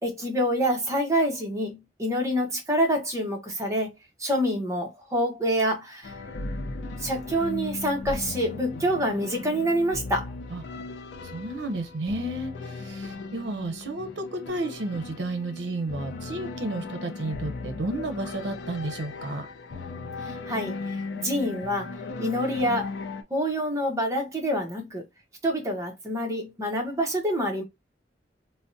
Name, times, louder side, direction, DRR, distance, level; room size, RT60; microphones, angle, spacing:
voice 1, 0.0-3.9 4.2-6.2 7.0-10.3 20.2-21.9 22.2-22.9 23.3-25.0 25.4-27.6, equal, 20° right, 0.9 m, -27 dB
sound 1, 6.0-23.2, left 3 dB, 75° left, 0.5 m, -37 dB
voice 2, 11.3-19.5, right 2 dB, 85° right, 0.6 m, -32 dB
3.4 x 2.1 x 2.5 m
head